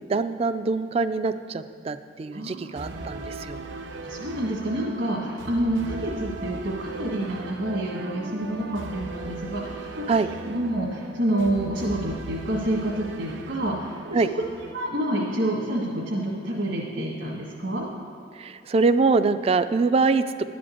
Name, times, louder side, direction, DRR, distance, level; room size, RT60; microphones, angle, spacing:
voice 1, 0.1-3.6 10.1-10.3 14.1-14.3 18.4-20.2, right 4 dB, 30° right, 11 dB, 0.3 m, -24 dB
voice 2, 2.3-14.3 14.7-17.9, right 1 dB, 70° right, -5 dB, 1.6 m, -28 dB
sound 1, 2.7-14.7, right 3 dB, 85° right, 0.7 m, -38 dB
11.5 x 5.1 x 8.5 m, 2.4 s
head